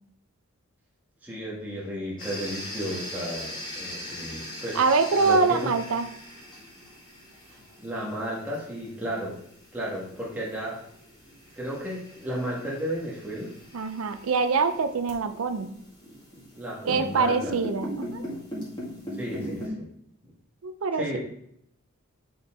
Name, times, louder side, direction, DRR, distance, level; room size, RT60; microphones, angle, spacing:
voice 1, 1.2-4.8 5.2-5.7 7.5-9.4 9.7-10.8 11.5-13.5 16.6-17.6 19.1-19.9 20.9-21.2, equal, 10° right, -6 dB, 1.4 m, -33 dB
sound 1, 2.2-19.7, equal, 25° left, 2.0 m, -40 dB
voice 2, 4.7-6.1 13.7-15.7 16.9-18.2 20.6-21.2, right 4 dB, 75° right, 10 dB, 0.5 m, -24 dB
6.6 x 4.5 x 3.6 m, 0.71 s
head